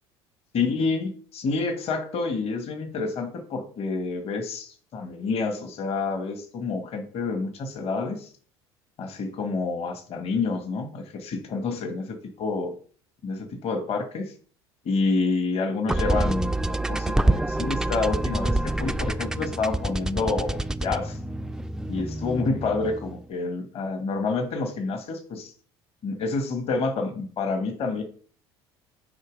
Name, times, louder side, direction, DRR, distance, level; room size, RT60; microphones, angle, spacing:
voice 1, 0.5-8.3 9.0-12.7 13.2-14.3 14.8-21.2 21.9-25.5 26.0-28.0, left 4 dB, 50° left, 6 dB, 1.2 m, -28 dB
sound 1, 15.9-23.2, right 1 dB, 5° right, 0.3 m, -27 dB
6.4 x 3.0 x 5.1 m, 0.43 s
hypercardioid pair, 70°, 13 cm